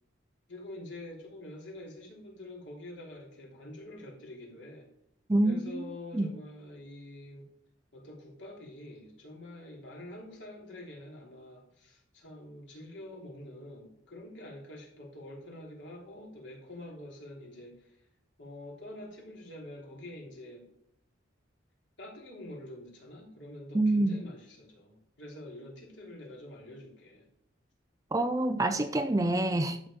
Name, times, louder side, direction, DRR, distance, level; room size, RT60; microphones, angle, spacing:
voice 1, 0.5-4.9 5.4-7.5 7.9-18.0 18.4-20.7 22.0-27.3, left 1 dB, 60° left, -1 dB, 3.4 m, -46 dB
voice 2, 5.3-5.8 6.1-6.3 23.7-24.2 28.1-29.8, right 1 dB, 15° right, 10 dB, 0.5 m, -26 dB
12.0 x 7.2 x 5.0 m, 0.73 s
head